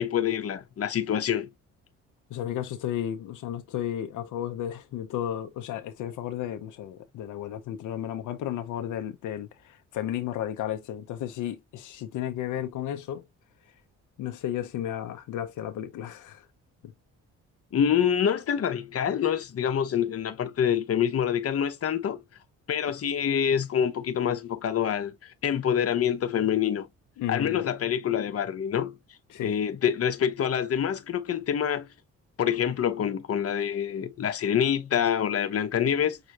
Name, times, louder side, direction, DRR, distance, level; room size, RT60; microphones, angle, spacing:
voice 1, 0.0-1.5 17.7-22.2 22.7-26.9 27.3-29.0 29.4-31.9 32.4-36.2, left 8 dB, 50° left, 1.0 m, -26 dB
voice 2, 2.3-13.3 14.2-16.5 16.8-16.9 27.2-27.7 29.3-29.5, left 11 dB, 80° left, 0.8 m, -33 dB
6.5 x 2.4 x 2.8 m
cardioid pair, 90°, 30 cm